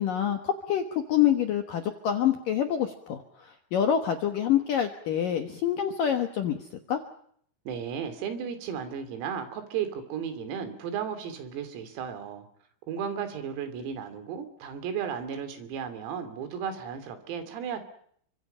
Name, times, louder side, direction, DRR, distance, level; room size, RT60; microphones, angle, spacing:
voice 1, 0.0-7.0, left 9 dB, 70° left, 6 dB, 2.1 m, -27 dB
voice 2, 7.7-12.5 12.9-17.8, right 7 dB, 90° right, 9 dB, 5.7 m, -34 dB
29.5 x 25.0 x 5.7 m, 0.65 s
omnidirectional pair, 6.0 m